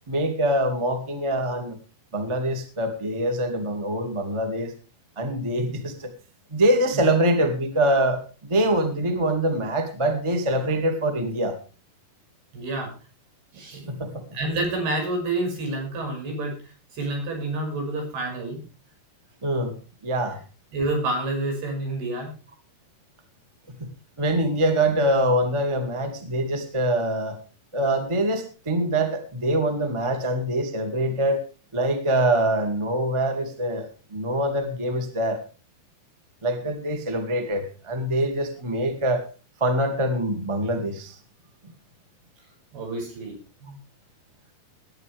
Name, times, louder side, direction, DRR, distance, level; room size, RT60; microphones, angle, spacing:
voice 1, 0.1-1.8 2.1-4.7 5.1-6.1 6.5-11.6 13.9-14.2 19.4-19.7 20.0-20.4 23.7-23.9 24.2-27.4 27.7-31.4 31.7-35.4 36.4-39.2 39.6-41.1, right 1 dB, 10° right, 6 dB, 1.3 m, -24 dB
voice 2, 12.5-12.9 13.5-14.1 14.3-16.6 16.9-18.6 20.7-22.3 42.7-43.4 43.6-43.8, right 2 dB, 85° right, 2 dB, 7.8 m, -28 dB
20.5 x 10.5 x 3.5 m, 0.35 s
omnidirectional pair, 4.4 m